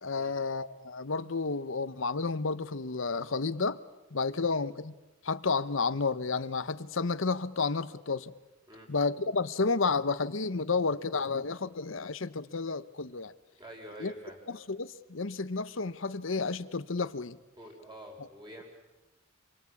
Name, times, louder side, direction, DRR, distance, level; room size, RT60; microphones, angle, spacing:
voice 1, 0.0-3.8 4.1-4.9 5.2-8.3 8.9-13.3 14.0-14.1 14.5-17.4, left 4 dB, 65° left, 1.0 m, -31 dB
voice 2, 13.6-14.4 17.6-18.6, equal, 20° right, 6.2 m, -47 dB
27.0 x 23.5 x 8.5 m
head